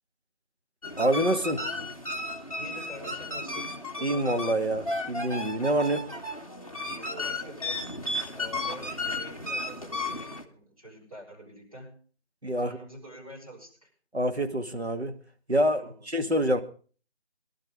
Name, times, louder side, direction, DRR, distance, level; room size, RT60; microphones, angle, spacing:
sound 1, 0.8-10.4, left 2 dB, 30° left, 1.2 m, -34 dB
voice 1, 1.0-1.7 4.0-6.1 12.4-12.8 14.1-15.2 15.5-16.6, right 1 dB, 65° right, 6 dB, 2.3 m, -26 dB
voice 2, 2.6-3.9 6.8-7.9 8.3-12.0 12.6-13.9 15.7-16.0, right 1 dB, 30° right, -4 dB, 6.5 m, -46 dB
23.0 x 12.0 x 3.7 m, 0.40 s
figure-of-eight pair, 175°, 35 cm